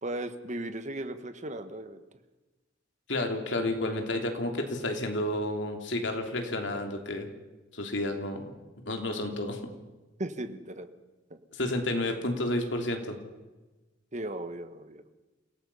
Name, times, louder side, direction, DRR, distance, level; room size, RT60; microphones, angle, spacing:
voice 1, 0.0-2.0 10.2-10.9 14.1-15.0, right 1 dB, 40° right, 9 dB, 1.5 m, -36 dB
voice 2, 3.1-7.3 7.7-8.5 8.9-9.6 11.5-13.2, left 1 dB, 65° left, 4 dB, 3.2 m, -31 dB
28.0 x 17.5 x 5.6 m, 1.2 s
head